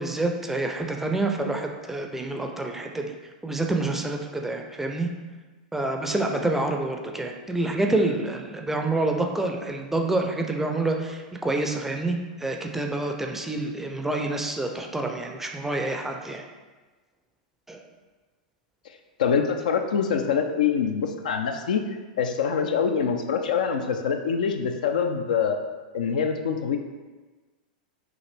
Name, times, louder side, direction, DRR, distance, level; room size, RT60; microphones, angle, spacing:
voice 1, 0.0-3.1 3.4-5.1 5.7-16.5 17.7-17.8, right 2 dB, 5° right, 3 dB, 0.4 m, -27 dB
voice 2, 19.2-21.8 22.2-25.5 25.9-26.8, left 6 dB, 70° left, 5 dB, 0.4 m, -24 dB
5.7 x 2.5 x 3.3 m, 1.3 s
hypercardioid pair, 100°, 4 cm